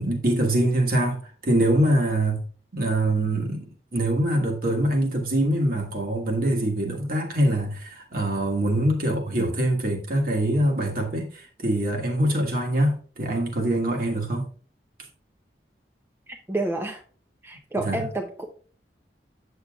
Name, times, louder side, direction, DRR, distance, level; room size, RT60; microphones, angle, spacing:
voice 1, 0.0-2.4 2.7-14.5 17.8-18.0, right 1 dB, 55° right, 1.5 m, -24 dB
voice 2, 16.3-17.0 17.4-18.5, right 2 dB, 15° right, 0.6 m, -29 dB
8.3 x 6.8 x 2.4 m
head